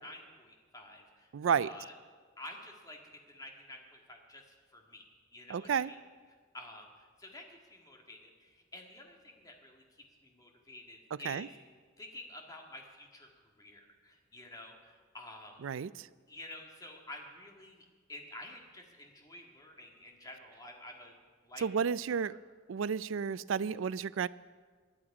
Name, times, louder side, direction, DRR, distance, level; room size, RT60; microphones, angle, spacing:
voice 1, 0.0-1.9 2.4-3.0 3.3-4.4 4.7-5.0 5.3-6.0 6.5-9.8 10.2-11.5 12.0-13.3 13.6-15.6 16.3-21.1 21.4-22.4, left 1 dB, 20° left, 1 dB, 1.9 m, -50 dB
voice 2, 1.3-1.7 5.5-5.9 11.2-11.5 15.6-16.1 21.6-22.3 22.7-24.3, right 7 dB, 75° right, 18 dB, 0.4 m, -31 dB
19.5 x 11.5 x 4.9 m, 1.5 s
head